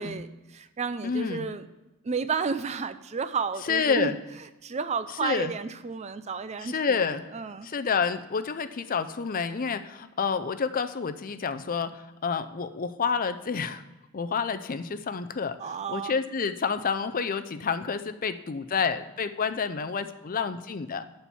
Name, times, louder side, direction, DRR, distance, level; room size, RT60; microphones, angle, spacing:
voice 1, 0.0-1.7 2.0-4.1 4.6-7.0 7.3-7.7 15.6-16.1, right 5 dB, 30° right, 12 dB, 0.4 m, -32 dB
voice 2, 1.0-1.5 3.7-4.2 5.2-5.5 6.6-7.2 7.6-13.8 14.1-15.6 15.9-21.1, left 5 dB, 40° left, 10 dB, 0.5 m, -29 dB
11.5 x 4.4 x 6.9 m, 1.1 s
head